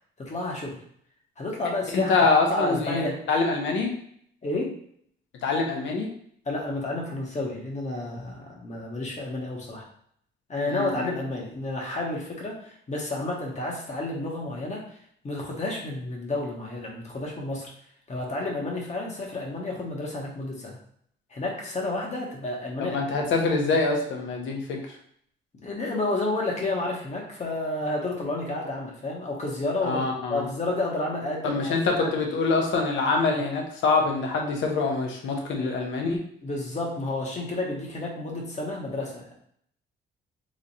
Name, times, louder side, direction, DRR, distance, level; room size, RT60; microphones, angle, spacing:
voice 1, 0.2-0.8 1.4-2.2 2.5-3.2 4.4-4.7 6.4-9.9 10.5-14.8 15.2-17.7 18.1-20.8 21.3-23.0 25.6-32.1 36.4-39.3, left 2 dB, 35° left, -2 dB, 1.2 m, -30 dB
voice 2, 1.9-3.9 5.4-6.1 10.7-11.0 22.8-24.8 29.8-30.4 31.4-36.2, left 3 dB, 75° left, 2 dB, 0.9 m, -25 dB
3.2 x 2.5 x 4.1 m, 0.65 s
cardioid pair, 90°, 20 cm